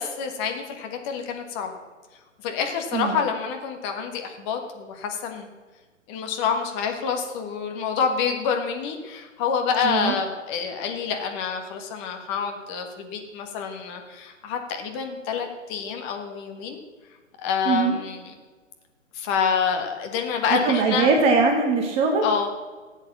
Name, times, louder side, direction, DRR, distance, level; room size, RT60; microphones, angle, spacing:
voice 1, 0.0-1.7 2.4-5.5 6.1-16.8 17.4-18.3 19.1-21.1 22.2-22.5, left 6 dB, 25° left, 4 dB, 1.6 m, -27 dB
voice 2, 20.5-22.2, right 4 dB, 15° right, 3 dB, 1.1 m, -21 dB
15.5 x 8.1 x 7.1 m, 1.4 s
figure-of-eight pair, 125°, 38 cm